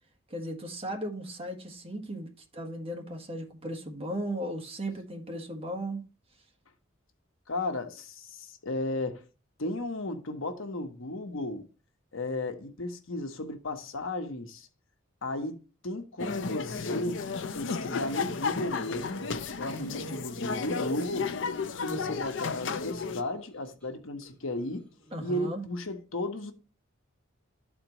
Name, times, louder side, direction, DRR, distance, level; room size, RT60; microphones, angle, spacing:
voice 1, 0.3-6.0 19.7-20.3 21.8-22.0 25.1-25.6, right 1 dB, 30° right, 1.4 m, -37 dB
voice 2, 7.5-9.2 9.6-11.7 12.1-14.7 15.2-17.2 17.5-19.2 19.6-21.3 21.8-24.8 25.2-26.5, left 1 dB, 90° left, 1.1 m, -34 dB
sound 1, 16.2-23.2, left 5 dB, 65° left, 0.5 m, -33 dB
sound 2, 17.2-20.6 20.9-25.4, right 2 dB, 5° left, 1.6 m, -53 dB
13.0 x 4.4 x 3.0 m
head